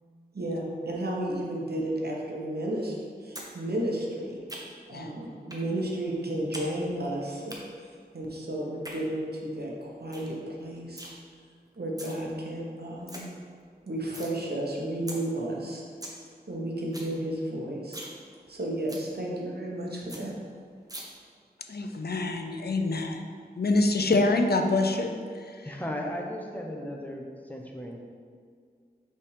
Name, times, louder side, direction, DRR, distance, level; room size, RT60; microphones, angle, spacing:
voice 1, 0.3-2.9 3.2-4.4 4.9-7.5 7.8-11.1 11.8-13.3 13.8-15.8 16.5-18.1 18.5-20.3, right 1 dB, 75° right, -2 dB, 1.0 m, -33 dB
sound 1, 3.3-3.5 3.8-4.9 5.5-5.7 6.0-6.7 6.9-7.6 8.6-9.0 9.4-9.5 9.8-9.9 10.1-10.3 10.6-11.1 11.7-12.1 12.6-12.7 12.9-13.2 13.6-14.3 14.7-14.8 15.1-15.2 15.6-15.7 15.8-16.2 16.5-16.6 16.8-17.1 17.4-17.5 17.8-18.1 18.5-18.6 18.9-19.1 19.5-19.6 19.8-19.9 20.1-20.2 20.9-21.0, right 1 dB, 20° right, 1.0 m, -41 dB
voice 2, 21.7-23.2 23.6-25.1, left 2 dB, 70° left, 5 dB, 0.5 m, -25 dB
voice 3, 25.6-28.0, equal, 10° left, 0 dB, 0.8 m, -36 dB
5.7 x 3.5 x 4.9 m, 2.1 s
wide cardioid pair, 60°, 17 cm